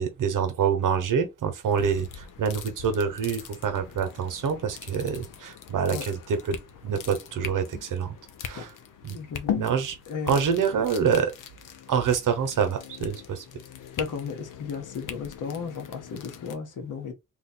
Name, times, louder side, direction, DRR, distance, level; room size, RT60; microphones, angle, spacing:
voice 1, 0.0-6.2 6.8-8.1 8.4-8.7 9.0-9.2 9.6-9.9 10.3-11.3 11.9-13.4, right 7 dB, 80° right, 0.8 m, -26 dB
sound 1, 1.6-16.6, left 8 dB, 90° left, 0.6 m, -40 dB
voice 2, 9.1-9.6 10.1-10.4 10.7-10.8 14.0-17.1, left 6 dB, 75° left, 0.9 m, -34 dB
2.9 x 2.2 x 4.1 m
cardioid pair, 60°, 31 cm